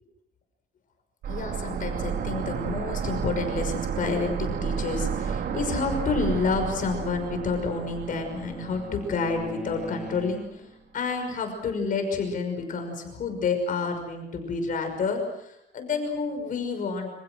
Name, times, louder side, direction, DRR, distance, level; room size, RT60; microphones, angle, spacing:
sound 1, 1.2-10.0 10.2-10.3, right 7 dB, 65° right, 2.4 m, -32 dB
voice 1, 1.3-10.7 10.9-17.1, left 4 dB, 50° left, 5 dB, 5.8 m, -29 dB
Bowed string instrument, 7.0-10.8, right 1 dB, 5° right, 1.9 m, -43 dB
29.0 x 27.0 x 6.4 m, 0.80 s
cardioid pair, 165°, 18 cm